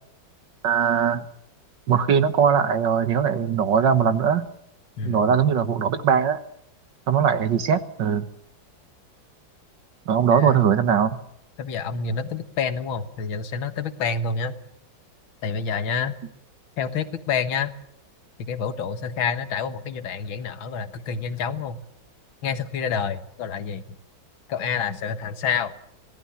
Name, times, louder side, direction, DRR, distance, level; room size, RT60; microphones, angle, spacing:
voice 1, 0.6-1.2 1.9-4.5 5.0-6.4 7.1-8.3 10.1-11.2, right 7 dB, 65° right, 11 dB, 1.9 m, -20 dB
voice 2, 5.0-5.4 10.3-10.6 11.6-14.6 15.4-16.1 16.8-17.7 18.5-21.8 22.4-23.8 24.5-25.7, left 6 dB, 90° left, 10 dB, 2.2 m, -28 dB
25.5 x 18.0 x 7.2 m, 0.73 s
omnidirectional pair, 2.1 m